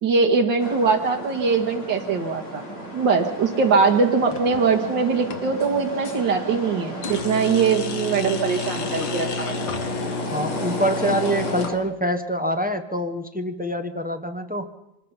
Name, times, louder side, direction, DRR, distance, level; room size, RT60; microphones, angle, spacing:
voice 1, 0.0-2.6 2.9-9.5 11.0-11.1, right 5 dB, 75° right, 2 dB, 2.5 m, -21 dB
sound 1, 0.6-11.7, equal, 60° left, 6.0 m, -33 dB
sound 2, 4.3-4.8 5.2-6.2 7.0-11.7, left 5 dB, 85° left, 2.2 m, -31 dB
voice 2, 10.3-14.7, equal, 5° right, 6 dB, 0.8 m, -25 dB
24.5 x 20.0 x 5.6 m, 0.89 s
omnidirectional pair, 2.0 m